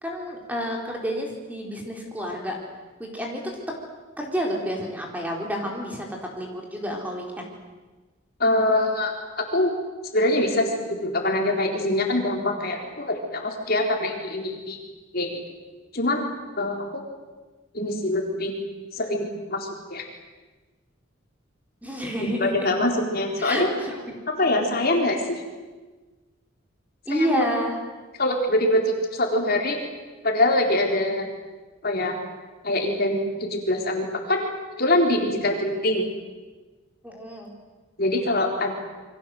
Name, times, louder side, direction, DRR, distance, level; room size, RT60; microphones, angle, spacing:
voice 1, 0.0-2.6 3.0-3.4 4.2-7.5 21.8-22.7 23.4-24.1 27.1-27.8 37.0-37.5, equal, 10° right, 0 dB, 4.3 m, -29 dB
voice 2, 8.4-9.7 10.1-14.8 15.1-15.3 15.9-16.3 16.6-17.0 17.7-18.5 18.9-20.0 22.2-23.7 24.4-25.4 27.1-27.5 28.2-29.8 30.2-31.2 31.8-32.2 32.6-34.5 34.8-36.0 38.0-38.7, left 1 dB, 50° left, 2 dB, 4.1 m, -24 dB
28.5 x 24.0 x 7.9 m, 1.3 s
head